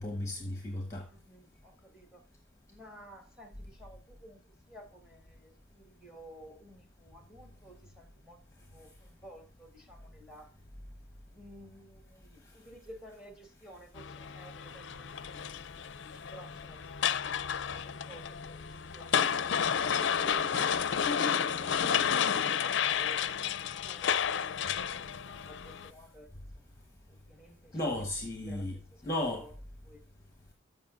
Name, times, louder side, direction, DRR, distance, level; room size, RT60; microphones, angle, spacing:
voice 1, 0.0-1.1 24.9-25.0 27.7-28.8 29.0-29.5, left 1 dB, 15° left, 1.1 m, -34 dB
voice 2, 1.0-2.2 2.7-10.6 11.2-15.6 15.8-19.3 19.8-24.6 25.2-26.3 27.1-28.1 28.4-29.1 29.4-29.5 29.8-30.0, right 1 dB, 5° right, 1.7 m, -53 dB
sound 1, 14.0-25.9, left 8 dB, 60° left, 0.5 m, -31 dB
14.0 x 5.5 x 2.5 m
head